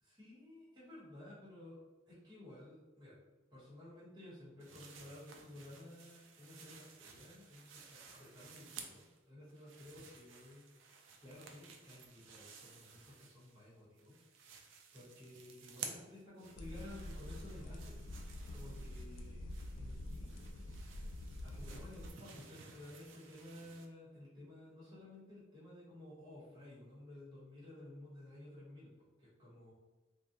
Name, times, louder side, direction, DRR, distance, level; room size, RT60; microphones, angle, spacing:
voice 1, 0.0-1.8 2.1-3.2 3.5-10.7 11.2-14.2 14.9-17.9 18.5-19.4 19.7-20.3 21.4-29.7, left 1 dB, 25° right, -9 dB, 1.0 m, -54 dB
sound 1, 4.6-9.2 9.5-13.7 14.0-23.9, right 5 dB, 85° right, 0.4 m, -55 dB
sound 2, 16.5-22.1, left 1 dB, 80° left, 0.3 m, -46 dB
2.4 x 2.2 x 2.6 m, 1.2 s
head